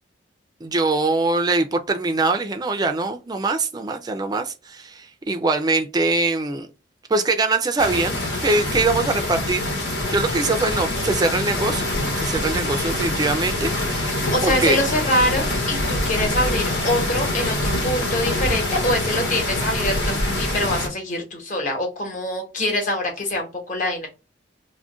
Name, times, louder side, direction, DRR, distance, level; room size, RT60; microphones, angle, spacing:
voice 1, 0.6-6.7 7.1-9.7 10.1-11.9 12.2-14.8, right 3 dB, 20° right, 0.4 m, -23 dB
sound 1, 7.8-20.9, left 1 dB, 75° left, 1.0 m, -25 dB
voice 2, 14.3-24.1, left 1 dB, 45° left, 1.0 m, -24 dB
2.4 x 2.1 x 3.6 m
head